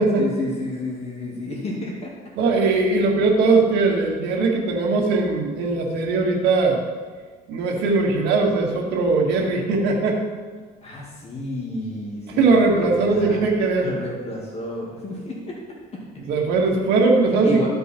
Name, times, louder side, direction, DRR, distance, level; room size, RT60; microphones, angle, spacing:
voice 1, 0.2-2.1 10.8-13.5 13.8-15.6 15.9-16.0 17.4-17.7, left 2 dB, 40° left, -3 dB, 2.2 m, -31 dB
voice 2, 2.4-6.8 7.5-10.2 12.4-13.9 16.3-17.7, right 3 dB, 85° right, 0 dB, 1.9 m, -20 dB
14.0 x 5.3 x 4.4 m, 1.5 s
cardioid pair, 110°, 17 cm